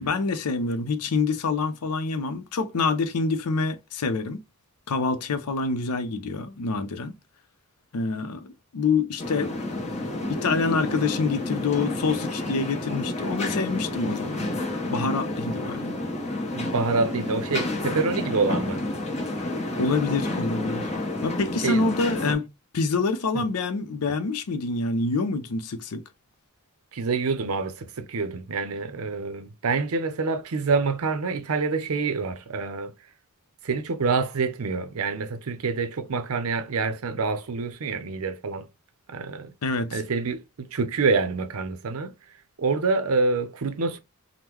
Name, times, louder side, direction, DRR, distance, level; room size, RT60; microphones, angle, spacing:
voice 1, 0.0-4.4 4.9-7.1 7.9-9.5 10.3-14.5 14.9-15.9 19.8-20.9 21.2-22.5 22.7-26.0 39.6-40.0, left 4 dB, 90° left, 0.6 m, -26 dB
sound 1, 9.2-22.3, left 1 dB, 30° left, 0.8 m, -30 dB
voice 2, 16.5-18.8 21.6-21.8 23.3-23.4 26.9-32.9 33.6-38.7 39.1-39.5 39.9-42.1 42.6-44.0, right 4 dB, 75° right, 0.6 m, -26 dB
3.6 x 2.1 x 3.0 m
head